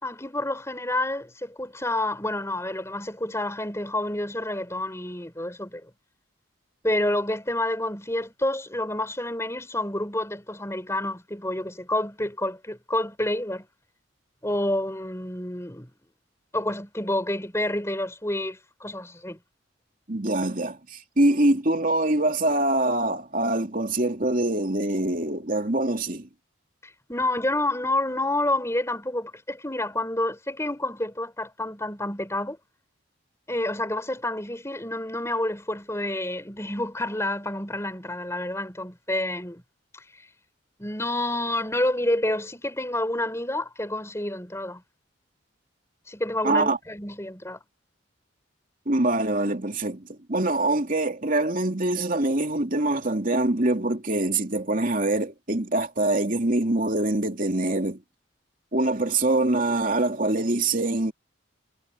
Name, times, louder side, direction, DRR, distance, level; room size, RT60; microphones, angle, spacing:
voice 1, 0.0-5.9 6.8-13.6 14.4-15.9 16.5-19.4 26.8-32.6 33.5-39.6 39.9-40.0 40.8-44.8 46.1-47.6, left 1 dB, 15° left, 4.3 m, -29 dB
voice 2, 20.1-26.3 46.4-46.8 48.9-58.0 58.7-61.1, right 2 dB, 40° right, 2.9 m, -24 dB
head